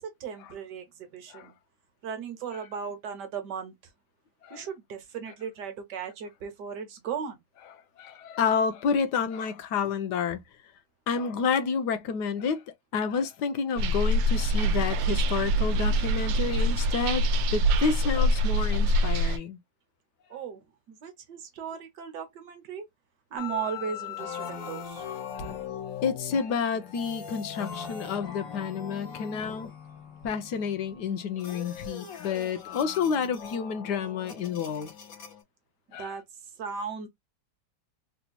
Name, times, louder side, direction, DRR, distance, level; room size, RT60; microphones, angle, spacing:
voice 1, 0.0-1.5 2.0-3.7 4.5-7.4 20.3-22.9 23.3-25.0 35.9-36.2 36.6-37.1, right 7 dB, 70° right, 1.4 m, -37 dB
voice 2, 8.0-10.4 11.1-12.6 12.9-17.2 17.5-19.6 25.3-25.6 26.0-29.7 30.2-34.9 35.9-36.1, left 6 dB, 70° left, 1.2 m, -29 dB
sound 1, 13.8-19.4, right 1 dB, 90° right, 1.4 m, -24 dB
sound 2, 23.4-35.4, left 7 dB, 55° left, 1.5 m, -40 dB
4.0 x 2.8 x 2.2 m
omnidirectional pair, 2.0 m